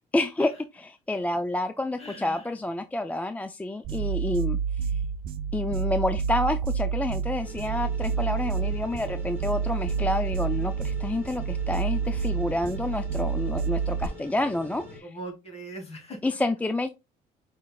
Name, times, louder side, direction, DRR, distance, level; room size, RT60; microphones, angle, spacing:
voice 1, 0.1-4.9 5.5-15.2 16.2-16.9, left 2 dB, 10° left, 9 dB, 0.4 m, -29 dB
voice 2, 2.0-2.4 15.0-16.2, right 1 dB, 35° left, 3 dB, 2.4 m, -40 dB
sound 1, 3.8-14.1, right 6 dB, 60° right, 0.5 m, -29 dB
sound 2, 7.4-15.0, left 3 dB, 10° right, 2.0 m, -44 dB
5.3 x 4.0 x 2.3 m, 0.24 s
cardioid pair, 110°, 17 cm